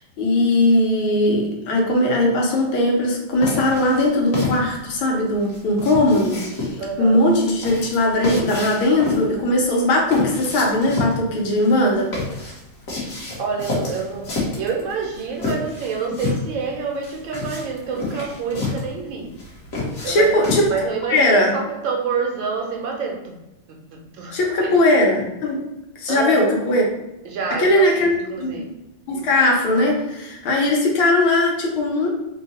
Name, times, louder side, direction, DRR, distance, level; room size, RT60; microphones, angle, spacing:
voice 1, 0.2-12.1 20.1-20.7 21.1-21.6 24.3-25.7 26.0-26.9 27.6-28.6 29.1-32.1, left 1 dB, 80° left, -1 dB, 1.7 m, -19 dB
sound 1, 3.4-20.9, left 3 dB, 45° left, 1.3 m, -29 dB
voice 2, 6.8-7.2 13.4-14.3 14.6-19.4 20.0-23.4 23.7-24.7 26.1-26.4 27.2-28.7, right 5 dB, 70° right, 1 dB, 1.4 m, -28 dB
3.9 x 2.3 x 4.1 m, 0.94 s
omnidirectional pair, 2.3 m